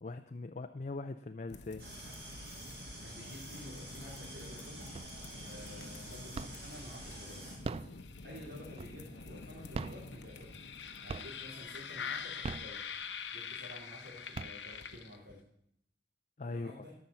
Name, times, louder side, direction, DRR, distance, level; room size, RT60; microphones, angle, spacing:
voice 1, 0.0-1.8 2.3-2.4 16.4-16.8, left 3 dB, 45° left, 7 dB, 0.5 m, -41 dB
sound 1, 1.5-15.4, left 5 dB, 80° left, 0.9 m, -46 dB
sound 2, 1.8-7.5, right 1 dB, 65° right, 5.1 m, -49 dB
voice 2, 3.0-4.9 5.4-7.7 8.2-10.6 11.0-12.9 13.3-15.4 16.4-16.9, left 1 dB, 85° right, -6 dB, 3.3 m, -51 dB
sound 3, 5.0-5.5 5.8-6.8 7.5-9.2 9.6-10.8 11.1-11.6 12.2-13.3 13.8-13.9 14.2-15.1, right 4 dB, 35° right, 0.3 m, -42 dB
13.0 x 6.1 x 6.9 m, 0.70 s
head